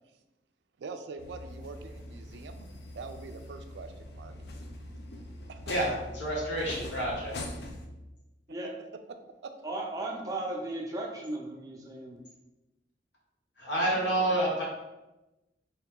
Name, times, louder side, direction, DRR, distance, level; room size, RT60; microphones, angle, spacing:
voice 1, 0.8-2.7 2.9-4.3 5.5-5.8 9.1-9.2 9.4-9.5 13.9-14.4, right 4 dB, 75° right, 8 dB, 0.4 m, -43 dB
sound 1, 1.2-7.9, left 1 dB, 65° left, 0.5 m, -43 dB
voice 2, 5.7-7.3 13.6-14.6, right 1 dB, 85° left, -4 dB, 1.2 m, -29 dB
voice 3, 9.6-12.2, right 2 dB, 20° right, -1 dB, 0.6 m, -36 dB
3.0 x 2.8 x 3.6 m, 1.0 s
head